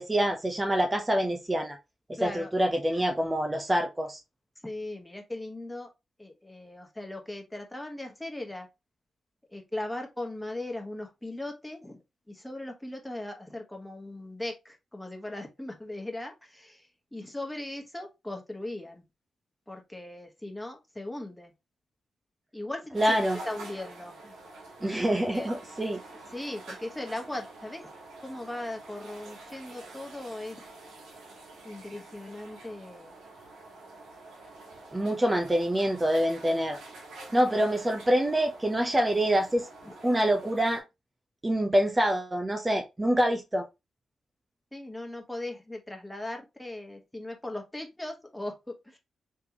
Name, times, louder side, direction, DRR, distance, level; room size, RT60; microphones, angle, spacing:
voice 1, 0.0-1.8 2.2-4.2 22.9-23.4 24.8-26.0 34.9-36.8 37.3-39.7 40.0-40.8 41.4-43.7, equal, 25° right, 0.7 m, -26 dB
voice 2, 2.2-2.5 4.6-5.9 6.2-8.7 9.5-12.0 12.3-19.0 19.7-21.5 22.5-23.2 23.5-24.3 25.3-25.5 26.3-27.9 28.2-30.6 31.6-33.1 37.3-37.6 39.8-39.9 44.7-49.0, left 1 dB, 10° left, 1.2 m, -38 dB
sound 1, 22.9-40.8, right 2 dB, 85° right, 1.7 m, -47 dB
3.4 x 3.3 x 2.9 m
supercardioid pair, 45°, 0 cm